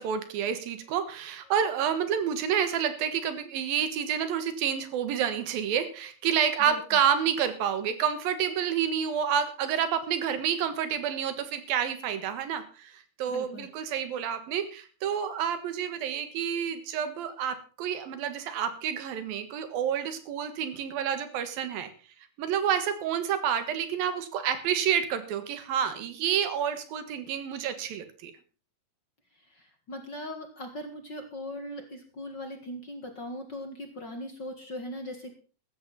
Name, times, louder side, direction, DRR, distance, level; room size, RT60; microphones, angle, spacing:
voice 1, 0.0-21.9 22.4-28.3, right 8 dB, 85° right, 11 dB, 3.3 m, -29 dB
voice 2, 13.3-13.7 29.5-35.3, left 1 dB, 40° left, 5 dB, 1.8 m, -39 dB
15.0 x 13.0 x 4.1 m, 0.37 s
omnidirectional pair, 4.0 m